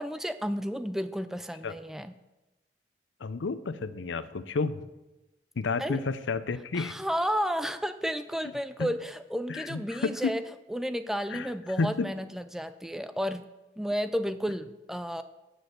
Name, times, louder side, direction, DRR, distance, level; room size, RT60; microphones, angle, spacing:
voice 1, 0.0-2.1 5.8-6.0 6.7-10.4 10.7-13.5 13.8-15.2, equal, ahead, 11 dB, 0.3 m, -32 dB
voice 2, 3.2-4.8 5.6-7.0 8.8-8.9 9.5-10.3 11.3-11.5 11.8-12.1, left 4 dB, 75° left, 14 dB, 0.6 m, -31 dB
7.6 x 6.4 x 7.8 m, 1.0 s
head